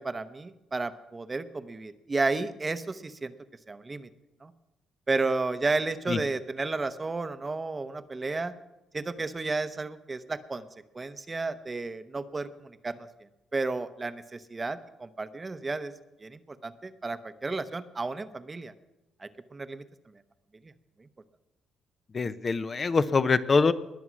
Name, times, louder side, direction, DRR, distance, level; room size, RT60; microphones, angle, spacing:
voice 1, 0.0-3.3 3.7-4.1 4.4-4.5 5.1-8.5 8.9-10.6 10.9-13.1 13.5-15.9 16.2-18.7 19.2-19.8 20.6-20.7 21.0-21.1, right 3 dB, 25° right, 11 dB, 0.8 m, -32 dB
voice 2, 22.1-23.7, left 4 dB, 35° left, 12 dB, 0.6 m, -24 dB
21.0 x 7.1 x 6.2 m, 0.96 s
cardioid pair, 90°, 0 cm